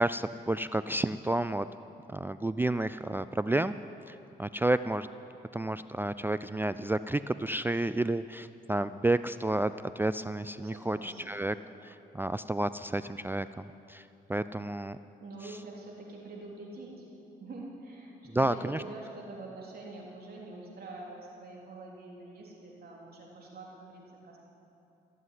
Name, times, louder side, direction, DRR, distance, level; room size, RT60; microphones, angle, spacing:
voice 1, 0.0-1.7 2.1-3.8 4.1-5.1 5.5-11.5 11.8-14.0 14.3-15.0 18.3-18.8, right 2 dB, 10° right, 13 dB, 0.4 m, -30 dB
voice 2, 10.6-11.4 15.2-17.0 17.4-18.1 18.4-24.4, right 2 dB, 60° right, -3 dB, 3.4 m, -45 dB
16.0 x 7.7 x 9.6 m, 2.8 s
cardioid pair, 65°, 18 cm